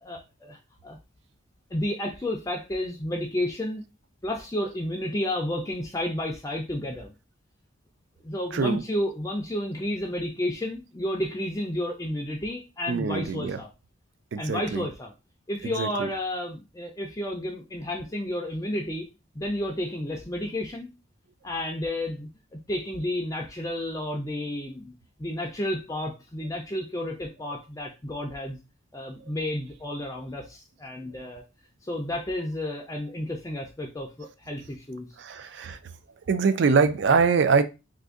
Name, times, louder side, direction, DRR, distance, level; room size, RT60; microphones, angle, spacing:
voice 1, 0.0-1.0 1.7-3.8 4.2-7.1 8.2-13.7 14.4-15.1 15.5-19.1 19.3-20.9 21.4-22.3 22.7-24.9 25.2-28.6 28.9-31.4 31.8-35.2, left 1 dB, 15° left, 0.4 m, -31 dB
voice 2, 8.5-8.8 12.9-13.6 14.3-14.9 15.6-16.1 31.1-31.2 35.2-35.8 36.3-37.6, right 5 dB, 60° right, 0.3 m, -24 dB
2.6 x 2.5 x 3.6 m
head